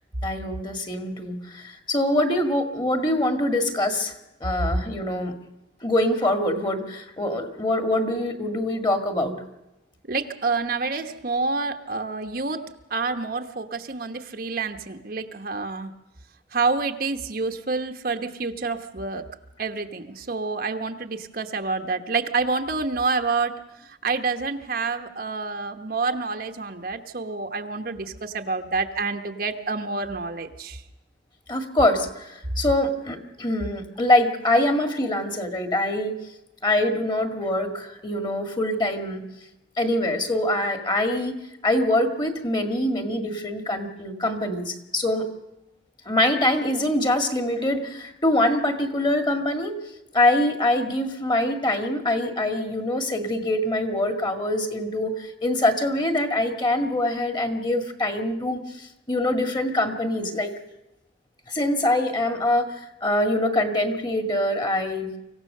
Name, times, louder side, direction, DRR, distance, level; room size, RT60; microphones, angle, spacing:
voice 1, 0.2-4.1 4.4-5.3 5.8-9.3 31.5-36.2 36.6-39.2 39.8-41.3 41.6-45.2 46.1-49.8 50.1-60.5 61.5-62.7 63.0-65.1, left 1 dB, 25° left, 6 dB, 1.9 m, -24 dB
voice 2, 10.1-12.6 12.9-15.9 16.5-19.2 19.6-30.8, right 4 dB, 50° right, 5 dB, 1.1 m, -28 dB
25.0 x 16.0 x 6.7 m, 0.94 s
head